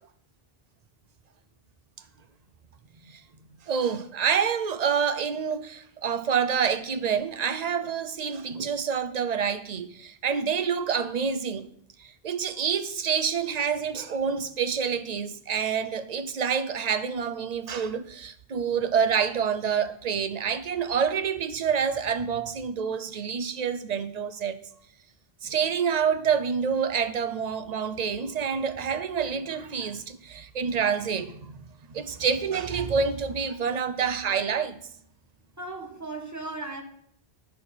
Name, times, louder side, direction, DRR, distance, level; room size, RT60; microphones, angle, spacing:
voice 1, 3.7-11.7 12.0-24.6 25.4-34.8, right 7 dB, 45° right, 0.7 m, -27 dB
voice 2, 35.6-36.8, right 2 dB, 15° right, 1.5 m, -36 dB
9.8 x 6.4 x 5.6 m
omnidirectional pair, 1.0 m